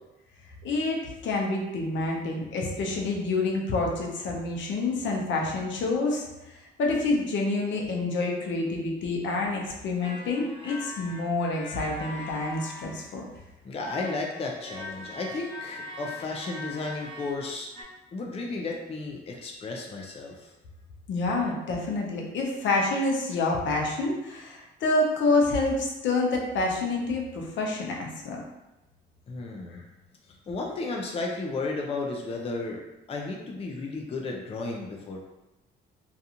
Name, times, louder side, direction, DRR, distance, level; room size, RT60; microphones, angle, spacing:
voice 1, 0.6-6.2 6.8-13.2 21.1-28.4 29.7-29.8, left 2 dB, 70° left, -1 dB, 0.6 m, -27 dB
sound 1, 10.0-13.5 13.8-17.8, left 2 dB, 10° left, 1.0 m, -41 dB
voice 2, 13.6-17.7 18.1-20.5 29.3-29.8 30.3-32.8 33.1-35.2, left 3 dB, 30° left, 0 dB, 0.4 m, -33 dB
2.4 x 2.4 x 2.8 m, 0.98 s
cardioid pair, 90°, 20 cm